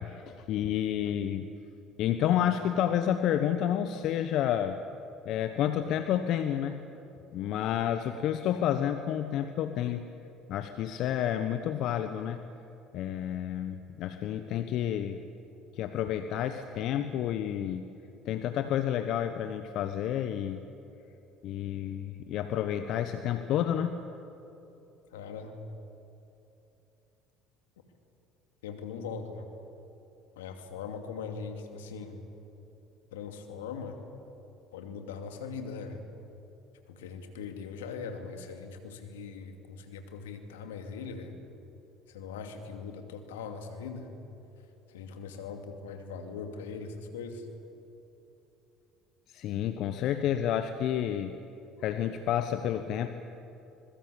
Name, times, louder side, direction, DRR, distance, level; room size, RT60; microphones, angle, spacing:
voice 1, 0.0-1.5 2.0-4.8 5.2-6.8 7.3-10.1 10.5-12.4 12.9-15.2 15.7-17.9 18.2-20.6 21.4-24.0 49.3-51.3 51.8-53.1, left 10 dB, 60° left, 9 dB, 1.1 m, -30 dB
voice 2, 25.1-25.6 28.6-29.5 30.4-32.3 33.1-34.0 34.7-36.0 36.9-41.4 42.1-44.1 44.9-47.5, left 5 dB, 85° left, 6 dB, 2.6 m, -40 dB
26.0 x 22.0 x 8.6 m, 3.0 s
hypercardioid pair, 65°, 0 cm